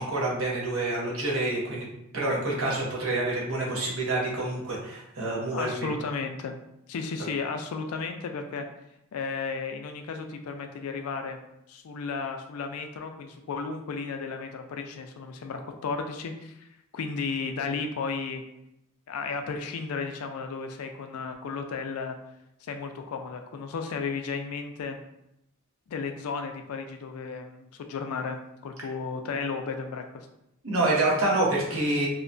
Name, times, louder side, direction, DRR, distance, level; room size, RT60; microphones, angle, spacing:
voice 1, 0.0-1.9 2.1-5.9 30.6-32.1, right 2 dB, 70° right, -4 dB, 0.9 m, -27 dB
voice 2, 5.5-6.6 6.9-8.7 9.1-11.4 11.7-16.7 16.9-18.4 19.1-22.2 22.6-25.0 25.9-30.3, left 4 dB, 85° left, 5 dB, 0.4 m, -34 dB
2.7 x 2.2 x 2.5 m, 0.82 s
head